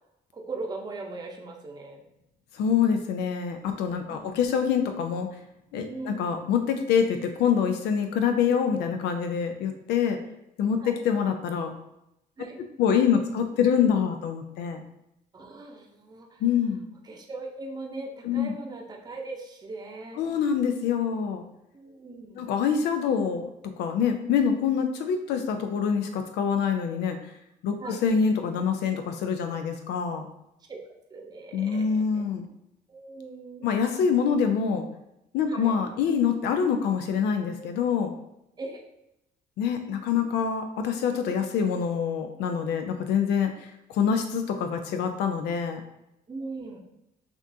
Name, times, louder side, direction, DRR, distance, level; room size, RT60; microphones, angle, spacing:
voice 1, 0.3-2.0 4.1-4.4 5.9-6.2 10.8-10.9 12.4-12.6 15.3-16.4 17.0-20.3 21.7-22.4 27.8-28.0 30.7-30.8 31.1-31.8 32.1-32.2 32.9-33.7 35.5-35.7 38.6-38.8 46.3-46.8, right 3 dB, 25° right, 0 dB, 0.7 m, -39 dB
voice 2, 2.5-5.3 5.7-10.2 10.6-11.7 12.8-14.8 16.4-16.8 18.2-18.5 20.2-21.5 22.4-23.5 23.8-27.2 27.6-30.3 31.5-32.5 33.6-34.9 35.3-38.1 39.6-45.8, left 7 dB, 85° left, 6 dB, 0.4 m, -25 dB
5.9 x 2.4 x 2.7 m, 0.85 s
cardioid pair, 110°, 17 cm